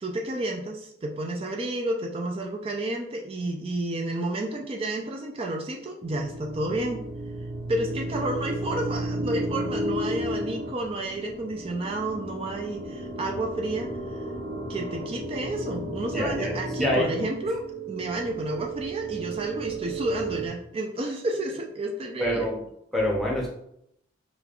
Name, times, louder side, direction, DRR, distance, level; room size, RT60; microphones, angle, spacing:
voice 1, 0.0-7.0 7.7-14.2 14.7-22.5, right 1 dB, 30° right, 1 dB, 0.3 m, -31 dB
sound 1, 6.0-20.5, right 1 dB, 70° right, 0.8 m, -33 dB
voice 2, 16.1-16.5 16.8-17.5 22.2-22.6 22.9-23.5, equal, ahead, -4 dB, 0.7 m, -26 dB
5.0 x 2.2 x 2.4 m, 0.75 s
head